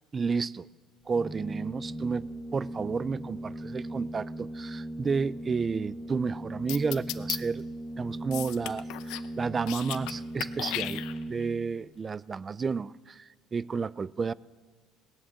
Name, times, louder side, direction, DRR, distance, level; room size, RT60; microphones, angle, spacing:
voice 1, 0.1-0.7 1.1-7.6 8.0-11.0 11.3-14.3, right 5 dB, 30° right, 0.3 m, -31 dB
Organ, 1.0-11.8, right 1 dB, 10° right, 3.8 m, -38 dB
sound 1, 6.7-7.4 8.3-9.3 9.6-10.1 10.4-11.4, left 16 dB, 80° left, 0.6 m, -35 dB
17.5 x 9.8 x 7.1 m
cardioid pair, 110°, 0 cm